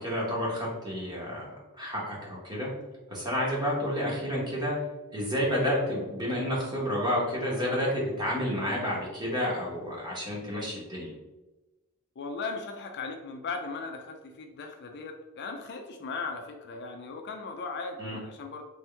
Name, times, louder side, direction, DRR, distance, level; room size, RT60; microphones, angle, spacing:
voice 1, 0.0-2.7 3.1-4.8 5.1-11.1 18.0-18.2, equal, 20° right, -4 dB, 1.2 m, -30 dB
voice 2, 12.2-18.6, left 4 dB, 50° left, 4 dB, 0.4 m, -37 dB
3.5 x 3.0 x 3.3 m, 1.1 s
head